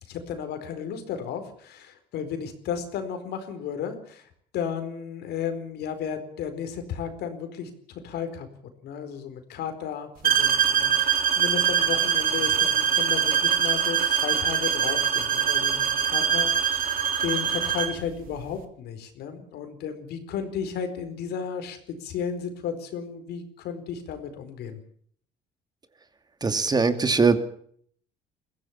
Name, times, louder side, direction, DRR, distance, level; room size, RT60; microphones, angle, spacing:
voice 1, 0.0-4.3 4.5-8.5 8.8-24.8, left 7 dB, 75° left, 8 dB, 4.5 m, -34 dB
sound 1, 10.2-18.0, right 8 dB, 55° right, 3.3 m, -23 dB
voice 2, 26.4-27.4, right 4 dB, 25° right, 9 dB, 2.5 m, -21 dB
22.5 x 16.0 x 7.3 m, 0.62 s
cardioid pair, 110°, 17 cm